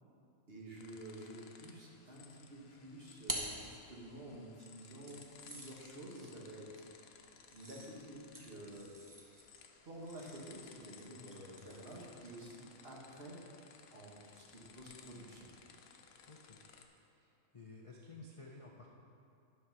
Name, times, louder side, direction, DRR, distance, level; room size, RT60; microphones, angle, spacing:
voice 1, 0.5-7.1 7.5-8.9 9.9-13.4 13.9-15.5, right 1 dB, 45° right, -3 dB, 1.7 m, -50 dB
sound 1, 0.8-16.9, left 6 dB, 85° left, 1.1 m, -60 dB
sound 2, 2.7-4.4 5.1-12.7, right 1 dB, 15° right, 0.9 m, -49 dB
voice 2, 11.6-12.0 16.3-16.6 17.1-18.9, left 3 dB, 35° left, -2 dB, 0.5 m, -54 dB
11.5 x 4.7 x 6.1 m, 2.6 s
omnidirectional pair, 1.5 m